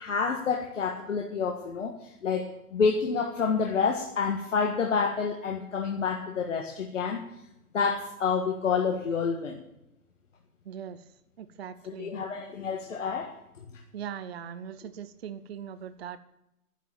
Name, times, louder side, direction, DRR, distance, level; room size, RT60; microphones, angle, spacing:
voice 1, 0.0-7.2 7.7-9.6 11.9-13.3, left 5 dB, 55° left, 2 dB, 1.7 m, -28 dB
voice 2, 10.7-11.0 11.4-12.1 13.9-16.2, right 8 dB, 45° right, 12 dB, 0.7 m, -40 dB
11.5 x 11.0 x 7.1 m, 0.85 s
figure-of-eight pair, 125°, 45 cm